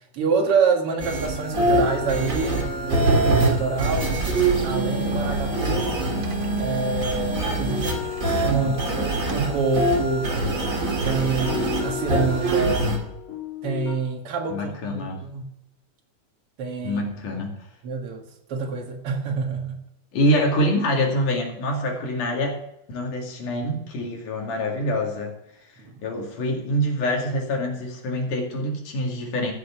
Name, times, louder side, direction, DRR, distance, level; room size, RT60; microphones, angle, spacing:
voice 1, 0.1-4.2 4.6-6.1 6.6-8.1 8.4-10.3 11.0-12.9 13.6-15.5 16.6-17.0 17.8-18.2 18.5-19.8 25.8-25.9, right 4 dB, 50° right, 3 dB, 2.4 m, -26 dB
sound 1, 1.0-13.0, right 1 dB, 30° right, 2.4 m, -25 dB
sound 2, 1.5-14.0, left 7 dB, 70° left, 3.6 m, -36 dB
Bowed string instrument, 4.2-8.6 8.9-9.0 9.3-9.6 9.8-12.7, right 8 dB, 70° right, 1.0 m, -31 dB
voice 2, 14.5-15.2 16.8-17.6 20.1-22.6 22.9-25.3 26.0-29.5, equal, 85° left, 1 dB, 3.9 m, -25 dB
14.5 x 6.6 x 7.0 m, 0.83 s
omnidirectional pair, 3.5 m